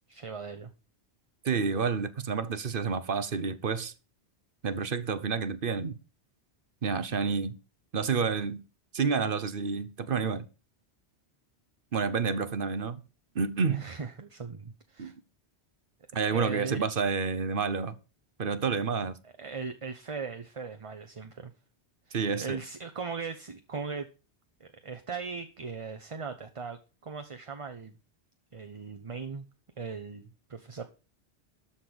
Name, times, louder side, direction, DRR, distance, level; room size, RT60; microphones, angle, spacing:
voice 1, 0.1-0.7 13.7-15.1 16.3-17.1 19.2-21.5 22.1-24.1 24.6-27.9 28.5-29.5 29.8-30.2 30.5-30.9, right 5 dB, 35° right, 0.8 m, -39 dB
voice 2, 1.4-3.9 4.6-6.0 6.8-7.6 7.9-8.6 8.9-10.5 11.9-13.0 13.3-13.9 15.0-15.1 16.1-18.0 18.4-19.2 22.1-22.6, right 5 dB, 55° right, 1.0 m, -29 dB
13.0 x 4.4 x 7.8 m
omnidirectional pair, 1.1 m